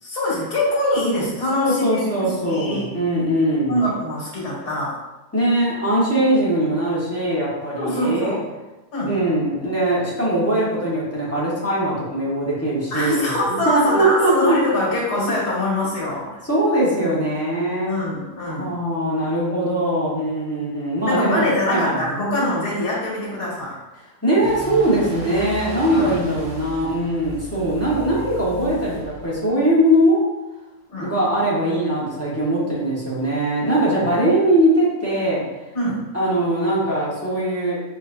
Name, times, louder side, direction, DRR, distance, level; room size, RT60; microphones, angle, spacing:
voice 1, 0.0-3.0 3.7-5.0 7.8-8.5 8.9-9.1 12.9-16.5 17.8-18.7 21.0-23.8 25.9-26.2 30.9-31.1 35.7-36.0, left 1 dB, 85° left, -5 dB, 2.3 m, -24 dB
voice 2, 1.6-3.8 5.3-8.4 9.1-14.6 16.5-17.9 18.6-22.0 24.2-30.2 31.0-35.4 36.1-37.8, right 1 dB, 10° left, -8 dB, 1.0 m, -21 dB
sound 1, 24.4-29.5, right 1 dB, 75° right, 1.5 m, -36 dB
4.4 x 4.0 x 2.6 m, 1.0 s
omnidirectional pair, 1.6 m